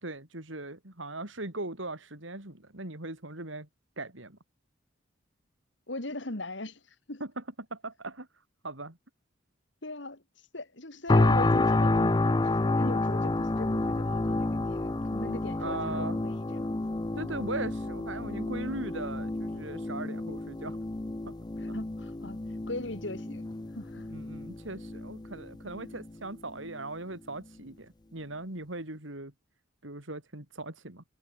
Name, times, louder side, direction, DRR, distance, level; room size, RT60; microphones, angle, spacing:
voice 1, 0.0-3.7 4.0-4.4 7.2-7.4 7.7-8.3 8.6-9.0 15.6-16.2 17.1-20.8 21.3-21.4 24.1-29.3 29.8-31.0, right 2 dB, 70° right, 4.0 m, -39 dB
voice 2, 5.9-6.8 7.1-7.2 9.8-10.2 10.5-16.8 21.6-22.4 22.7-23.5 23.7-24.1, left 2 dB, 60° left, 2.6 m, -39 dB
sound 1, 11.1-26.1 26.6-26.8, left 2 dB, 20° left, 0.5 m, -29 dB
head